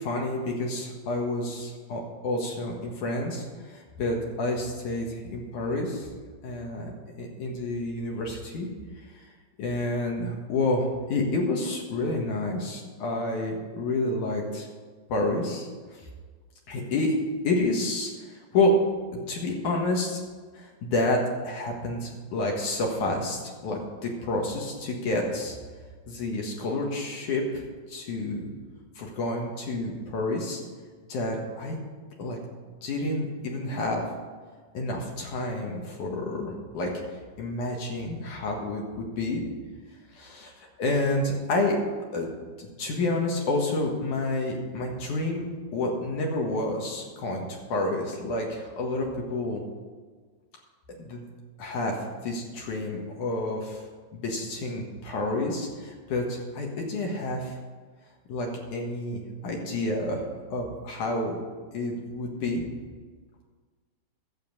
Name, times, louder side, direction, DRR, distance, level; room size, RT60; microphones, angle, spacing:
voice 1, 0.0-6.1 6.4-8.7 9.6-14.7 15.1-15.7 16.7-17.2 17.4-18.7 19.3-20.2 20.5-25.6 26.1-27.6 27.9-28.5 29.0-30.6 31.1-31.8 32.2-32.4 32.8-34.1 34.7-36.9 37.4-39.4 40.1-40.5 40.8-41.8 42.1-42.3 42.6-45.5 45.7-49.6 51.0-51.2 51.6-53.8 54.1-57.6 58.3-60.2 60.5-61.4 61.7-62.6, left 2 dB, 65° left, 0 dB, 3.0 m, -29 dB
11.5 x 7.8 x 7.2 m, 1.5 s
omnidirectional pair, 4.0 m